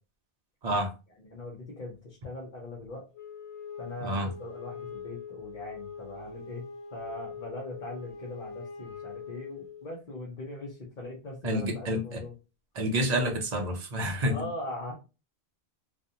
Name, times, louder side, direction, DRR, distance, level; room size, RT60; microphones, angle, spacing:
voice 1, 1.2-3.0 3.8-6.6 6.9-12.3 14.3-14.9, left 2 dB, 50° left, 0.8 m, -40 dB
Wind instrument woodwind instrument, 3.1-9.9, left 5 dB, 85° left, 1.2 m, -43 dB
voice 2, 11.4-12.2 12.8-14.4, equal, 45° right, 0.6 m, -28 dB
2.5 x 2.3 x 2.7 m
omnidirectional pair, 1.1 m